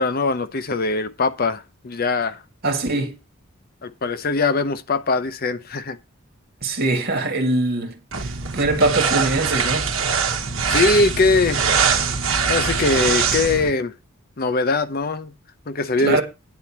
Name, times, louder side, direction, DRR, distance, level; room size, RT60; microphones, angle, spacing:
voice 1, 0.0-2.4 3.8-6.0 10.7-11.7 12.5-13.9 14.4-15.3 15.7-16.2, left 3 dB, 45° left, 0.7 m, -21 dB
voice 2, 2.6-3.1 6.6-7.9 8.5-9.9 16.0-16.2, right 2 dB, 45° right, 2.1 m, -21 dB
sound 1, 8.1-13.7, right 6 dB, 70° right, 1.1 m, -22 dB
9.6 x 4.3 x 7.2 m
head